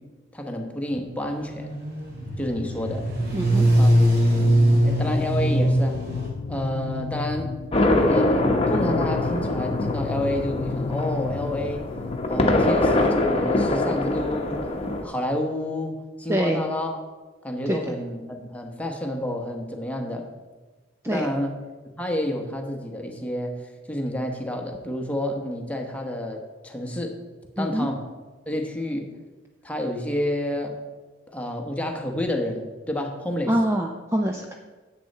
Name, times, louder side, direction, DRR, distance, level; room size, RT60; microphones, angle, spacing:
voice 1, 0.3-1.7 2.4-3.1 3.7-4.5 4.8-6.0 6.5-7.5 8.1-11.8 12.3-14.7 15.0-17.0 17.4-20.3 21.0-21.6 22.0-23.6 23.9-27.2 27.6-28.0 28.5-29.1 29.6-30.8 31.3-33.6, left 1 dB, 10° left, 2 dB, 1.2 m, -29 dB
sound 1, 1.2-6.3, right 1 dB, 55° right, 2.7 m, -21 dB
voice 2, 3.3-3.7 16.3-16.6 17.7-17.8 21.0-21.3 27.6-27.9 33.5-34.5, equal, 15° right, 2 dB, 0.5 m, -24 dB
sound 2, 4.3-12.3, left 4 dB, 50° left, 0.4 m, -32 dB
sound 3, 7.7-15.0, left 2 dB, 30° left, 1.0 m, -23 dB
10.0 x 7.9 x 4.2 m, 1.3 s
head